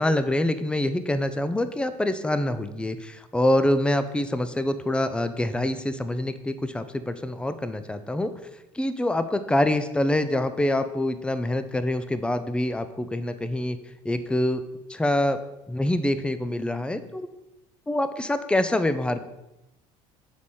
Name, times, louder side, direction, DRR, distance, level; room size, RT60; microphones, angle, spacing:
voice 1, 0.0-8.3 8.7-13.8 14.0-14.6 14.9-15.4 15.7-17.3 17.9-19.3, left 1 dB, 5° left, 11 dB, 0.5 m, -25 dB
7.1 x 4.8 x 4.3 m, 0.95 s
supercardioid pair, 105°, 14 cm